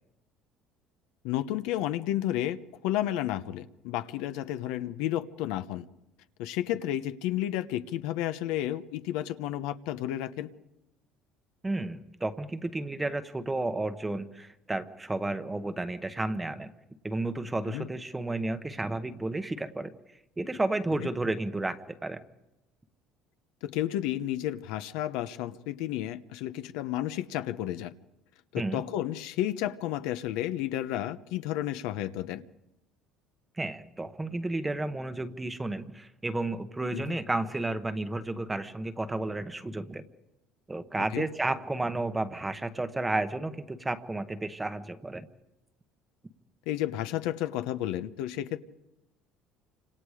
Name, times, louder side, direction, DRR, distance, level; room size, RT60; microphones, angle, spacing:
voice 1, 1.2-5.8 6.4-10.5 17.7-17.9 23.6-27.9 28.5-32.4 36.9-37.2 41.1-41.3 46.7-48.6, left 13 dB, 80° left, 11 dB, 1.0 m, -32 dB
voice 2, 11.6-16.7 17.0-19.9 20.4-22.2 28.6-28.8 33.6-40.0 40.7-45.3, right 2 dB, 10° right, 10 dB, 1.0 m, -32 dB
29.0 x 26.0 x 5.0 m, 0.93 s
cardioid pair, 160°, 0 cm